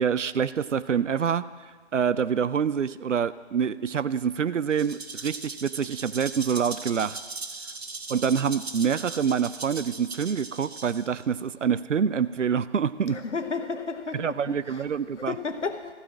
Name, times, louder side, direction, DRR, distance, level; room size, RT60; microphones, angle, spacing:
voice 1, 0.0-1.4 1.9-7.2 8.1-13.2 14.1-15.3, right 7 dB, 85° right, 16 dB, 0.5 m, -26 dB
Rattle (instrument), 4.7-11.2, right 3 dB, 60° right, 0.9 m, -39 dB
voice 2, 13.1-14.8 15.2-15.9, left 4 dB, 75° left, 9 dB, 0.9 m, -33 dB
14.5 x 4.9 x 7.2 m, 1.5 s
figure-of-eight pair, 165°, 36 cm